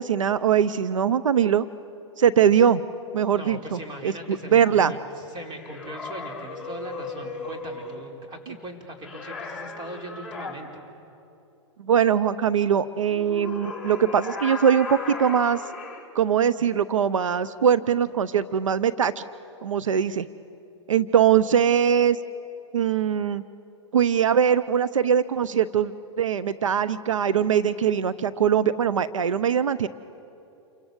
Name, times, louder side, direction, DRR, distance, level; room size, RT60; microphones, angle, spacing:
voice 1, 0.0-1.7 2.2-2.8 3.1-4.1 4.5-4.9 11.8-15.6 16.1-19.2 19.6-20.3 20.9-22.2 22.7-23.4 23.9-29.9, right 8 dB, 90° right, 14 dB, 0.7 m, -21 dB
voice 2, 3.3-10.8, right 1 dB, 30° right, 2 dB, 4.7 m, -39 dB
sound 1, 5.6-8.0 9.0-10.6 13.1-16.0, left 4 dB, 5° right, 5.8 m, -36 dB
28.5 x 24.5 x 8.0 m, 2.8 s
hypercardioid pair, 120°, 16 cm